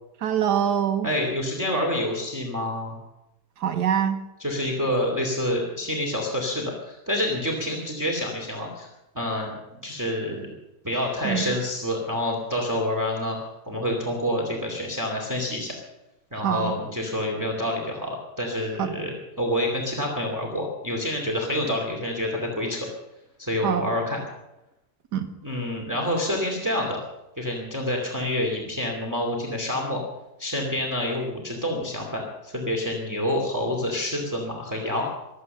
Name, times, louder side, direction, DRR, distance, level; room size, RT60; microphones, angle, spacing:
voice 1, 0.2-1.1 3.6-4.2 11.2-11.6 16.4-16.7 18.8-18.9 23.6-23.9 25.1-25.3, right 8 dB, 90° right, 6 dB, 1.6 m, -24 dB
voice 2, 1.0-3.0 4.4-8.9 9.1-9.5 9.8-10.5 10.8-13.4 13.7-15.8 16.3-22.9 23.4-24.2 25.4-27.0 27.4-30.0 30.4-35.1, left 1 dB, 10° right, 0 dB, 2.3 m, -27 dB
24.0 x 8.6 x 6.6 m, 0.93 s
omnidirectional pair, 1.7 m